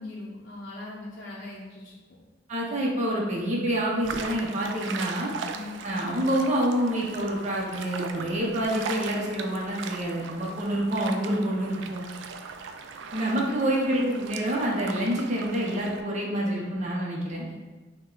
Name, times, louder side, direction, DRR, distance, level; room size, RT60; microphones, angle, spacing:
voice 1, 0.0-2.0 5.5-5.8 13.4-13.8 17.5-17.6, left 2 dB, 50° left, -7 dB, 0.6 m, -40 dB
voice 2, 2.5-5.3 5.8-12.0 13.1-17.5, right 1 dB, 40° right, -4 dB, 0.7 m, -27 dB
sound 1, 4.0-16.0, right 5 dB, 65° right, 0.4 m, -39 dB
5.2 x 2.2 x 3.8 m, 1.3 s
head